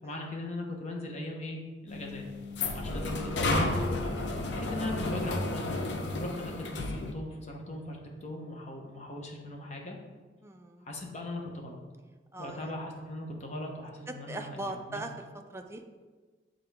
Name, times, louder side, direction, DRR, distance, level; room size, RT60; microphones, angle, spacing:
voice 1, 0.0-2.2 2.7-3.7 4.5-5.8 6.2-10.0 10.8-11.8 12.4-15.0, left 1 dB, 40° left, 1 dB, 0.9 m, -39 dB
sound 1, 1.9-7.1, left 2 dB, 80° left, 0.6 m, -32 dB
voice 2, 10.4-10.9 12.3-12.7 14.1-15.1 15.5-15.8, right 2 dB, 15° right, 5 dB, 0.4 m, -41 dB
7.7 x 3.8 x 3.4 m, 1.4 s
head